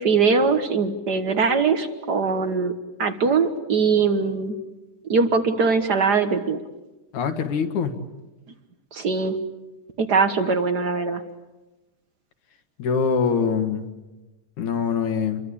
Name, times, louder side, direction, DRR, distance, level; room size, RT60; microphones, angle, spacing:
voice 1, 0.0-2.7 3.0-4.6 5.1-6.6 8.9-9.4 10.0-11.2, right 4 dB, 50° right, 8 dB, 1.2 m, -21 dB
voice 2, 7.1-7.9 12.8-13.9 14.6-15.4, left 6 dB, 75° left, 5 dB, 3.1 m, -23 dB
28.5 x 23.0 x 8.7 m, 1.1 s
omnidirectional pair, 3.5 m